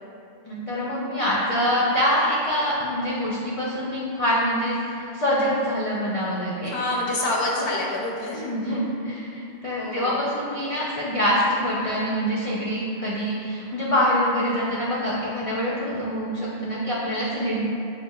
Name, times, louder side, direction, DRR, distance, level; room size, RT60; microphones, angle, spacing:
voice 1, 0.5-6.7 8.3-17.6, equal, 55° left, -6 dB, 0.4 m, -25 dB
voice 2, 6.6-8.4 9.8-10.2, left 2 dB, 80° left, -2 dB, 0.9 m, -27 dB
6.5 x 2.4 x 2.2 m, 2.7 s
omnidirectional pair, 1.1 m